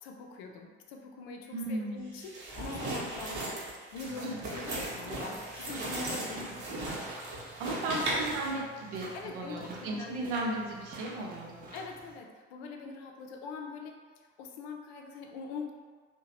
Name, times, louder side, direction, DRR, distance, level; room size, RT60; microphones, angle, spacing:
voice 1, 0.0-3.6 3.9-6.9 7.9-8.0 8.9-10.5 11.7-14.0 14.4-15.7, left 4 dB, 65° left, 2 dB, 0.5 m, -43 dB
voice 2, 1.5-2.0 4.2-4.4 7.6-11.6, right 2 dB, 70° right, -1 dB, 0.6 m, -36 dB
sound 1, 2.2-8.5, right 2 dB, 50° right, 0.9 m, -37 dB
sound 2, 4.1-12.2, right 1 dB, 25° right, 0.6 m, -48 dB
2.7 x 2.2 x 2.8 m, 1.5 s
figure-of-eight pair, 60°, 35 cm